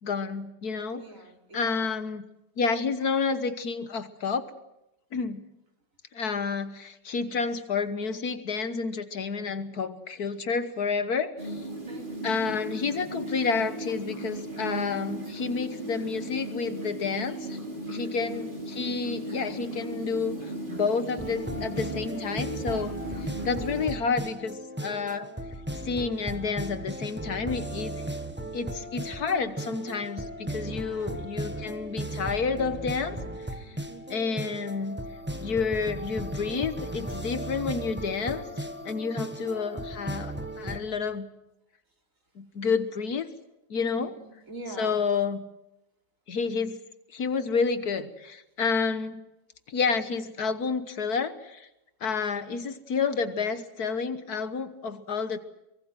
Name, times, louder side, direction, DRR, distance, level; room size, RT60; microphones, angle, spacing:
voice 1, 0.0-1.0 1.5-2.3 2.6-4.5 5.1-5.4 6.1-11.6 12.2-17.6 17.9-25.3 25.8-28.1 28.5-33.8 34.1-35.0 35.4-41.3 42.4-43.3 43.7-44.2 44.8-45.5 46.3-46.8 47.1-49.3 49.7-51.7 52.0-55.4, left 5 dB, 65° left, 12 dB, 1.7 m, -30 dB
voice 2, 0.9-1.9 11.4-12.1 17.8-18.3 30.6-31.1 33.7-34.0 39.1-39.3 44.0-45.0 52.0-52.1, right 2 dB, 50° right, 3 dB, 4.2 m, -45 dB
sound 1, 11.4-23.9, right 1 dB, 30° right, 4.7 m, -36 dB
sound 2, 21.2-40.8, right 1 dB, 5° right, 1.6 m, -36 dB
24.0 x 23.0 x 7.7 m, 0.90 s
omnidirectional pair, 1.8 m